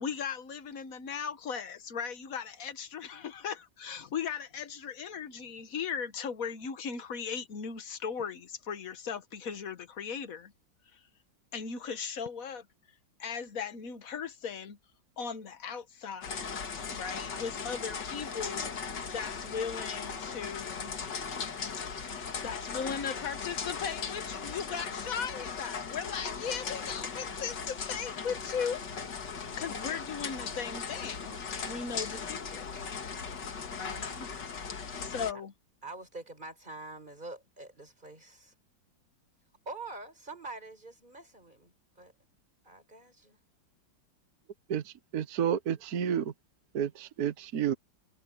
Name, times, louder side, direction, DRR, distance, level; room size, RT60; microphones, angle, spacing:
voice 1, 0.0-10.5 10.9-11.0 11.5-12.7 13.2-14.8 15.2-20.9 22.4-28.8 29.6-32.7 33.7-34.3 35.0-35.5, left 6 dB, 50° left, 1.7 m, -38 dB
sound 1, 16.2-35.3, left 5 dB, 65° left, 2.4 m, -38 dB
voice 2, 33.5-34.1 35.3-35.4 35.8-38.5 39.6-42.1 42.6-43.4, right 3 dB, 25° right, 4.9 m, -46 dB
voice 3, 44.7-46.3 46.7-47.7, right 9 dB, 55° right, 1.5 m, -31 dB
omnidirectional pair, 2.0 m